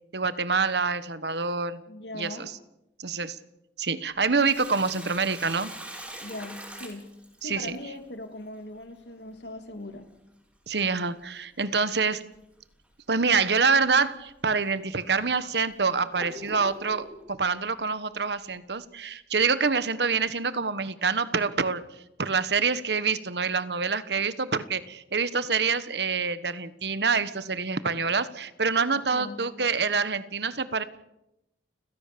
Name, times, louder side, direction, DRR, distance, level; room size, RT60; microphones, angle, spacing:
voice 1, 0.1-1.8 2.1-2.5 3.0-3.4 3.8-5.7 7.4-7.8 10.7-12.2 13.1-21.8 22.2-30.8, right 5 dB, 70° right, 14 dB, 1.3 m, -26 dB
voice 2, 1.9-2.5 6.2-7.1 7.4-10.1 29.1-29.4, left 1 dB, 80° left, 7 dB, 2.8 m, -40 dB
Sink (filling or washing), 4.2-7.8 10.2-10.3 12.1-12.4 12.8-12.9 13.7-13.9 14.6-14.7 15.3-17.2, right 1 dB, 5° right, 5.3 m, -42 dB
30.0 x 16.0 x 6.9 m, 0.88 s
head